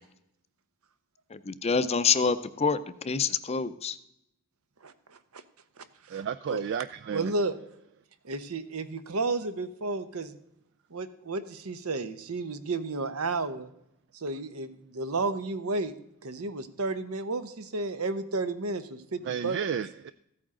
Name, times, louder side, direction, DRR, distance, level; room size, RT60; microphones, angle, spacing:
voice 1, 1.3-2.8 3.0-4.0, left 5 dB, 30° left, 13 dB, 0.5 m, -26 dB
voice 2, 4.8-5.4 5.8-5.9 6.1-6.2 6.5-6.6 7.1-7.5 8.2-10.4 10.9-13.7 14.1-15.9 16.2-19.6, right 3 dB, 75° right, 11 dB, 0.9 m, -32 dB
voice 3, 6.1-7.3 19.2-20.1, right 7 dB, 55° right, 13 dB, 0.3 m, -32 dB
14.5 x 8.8 x 3.8 m, 0.79 s
head